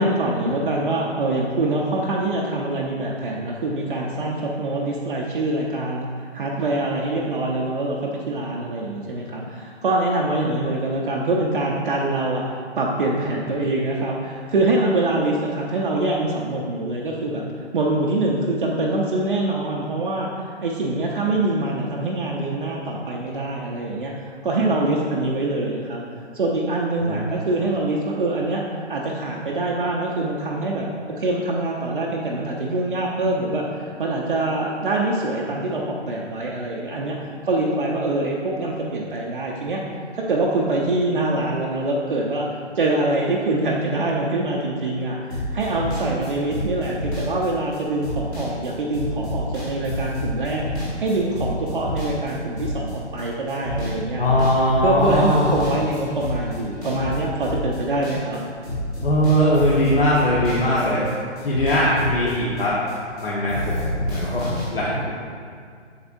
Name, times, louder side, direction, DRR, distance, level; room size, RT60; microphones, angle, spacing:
voice 1, 0.0-6.1 6.3-17.4 17.7-26.0 26.3-37.2 37.4-39.8 40.2-42.5 42.7-50.6 51.0-54.5 54.8-58.4, right 2 dB, 45° right, -3 dB, 0.7 m, -24 dB
sound 1, 45.3-53.2 53.5-54.0 54.2-58.4 58.6-61.1 61.4-63.2 63.5-64.7, left 1 dB, 5° left, 0.9 m, -29 dB
voice 2, 54.2-55.6 59.0-61.0 61.4-62.8 63.2-65.2, equal, 50° left, -7 dB, 1.2 m, -20 dB
8.0 x 6.8 x 2.6 m, 2.1 s
hypercardioid pair, 155°, 36 cm